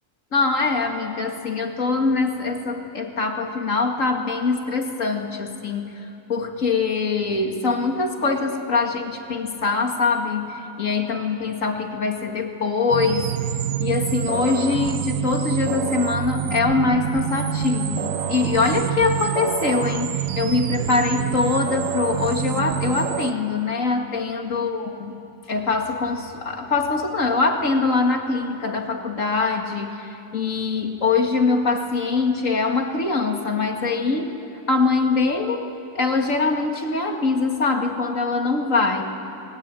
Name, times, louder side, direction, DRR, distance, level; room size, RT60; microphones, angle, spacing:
voice 1, 0.3-5.9 6.3-13.3 13.8-25.1 25.5-34.3 34.7-39.0, left 4 dB, 60° left, 4 dB, 2.4 m, -23 dB
sound 1, 12.9-23.3, right 10 dB, 65° right, 1.1 m, -26 dB
29.5 x 20.5 x 9.1 m, 2.9 s
omnidirectional pair, 1.5 m